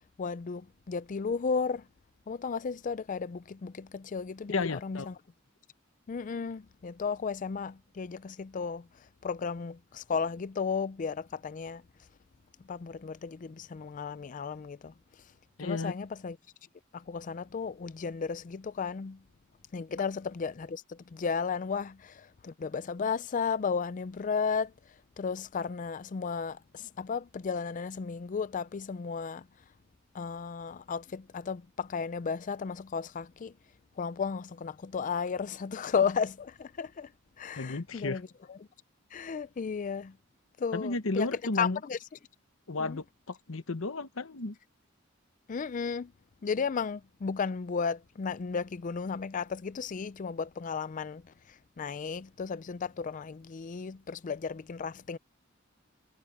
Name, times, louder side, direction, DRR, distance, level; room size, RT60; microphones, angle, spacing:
voice 1, 0.2-1.9 2.3-5.1 6.1-8.9 9.2-11.8 12.7-14.9 15.6-16.4 16.9-19.2 19.7-24.7 25.2-29.5 30.1-33.5 34.0-37.1 37.4-38.2 38.5-38.6 39.1-40.2 40.6-41.3 41.6-42.0 42.8-43.0 45.5-46.1 46.4-55.2, left 5 dB, 40° left, 0.4 m, -34 dB
voice 2, 4.5-5.1 15.6-15.9 37.6-38.2 40.7-41.8 42.7-44.5, left 3 dB, 80° left, 1.1 m, -33 dB
head